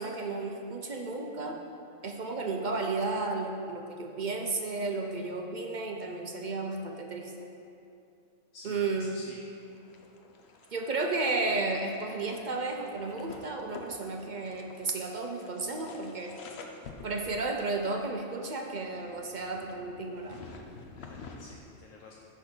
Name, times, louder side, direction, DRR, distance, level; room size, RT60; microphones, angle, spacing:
voice 1, 0.0-1.6 2.0-7.3 8.6-9.2 10.7-16.3 17.0-20.4, right 3 dB, 45° right, 2 dB, 0.6 m, -33 dB
voice 2, 8.5-9.4 21.0-22.1, left 3 dB, 80° left, -1 dB, 1.1 m, -50 dB
sound 1, 9.6-21.5, left 4 dB, 60° left, 0.9 m, -50 dB
10.0 x 3.9 x 6.5 m, 2.6 s
omnidirectional pair, 1.3 m